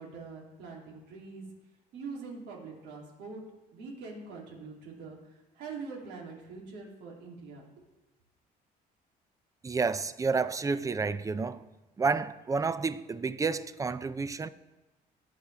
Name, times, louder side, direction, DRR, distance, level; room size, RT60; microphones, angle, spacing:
voice 1, 0.0-1.5 1.9-3.4 3.7-5.2 5.5-7.6, right 4 dB, 85° right, 2.9 m, -43 dB
voice 2, 9.6-11.6 12.0-14.5, right 4 dB, 20° right, 0.5 m, -30 dB
19.5 x 6.7 x 3.4 m
cardioid pair, 110°, 17 cm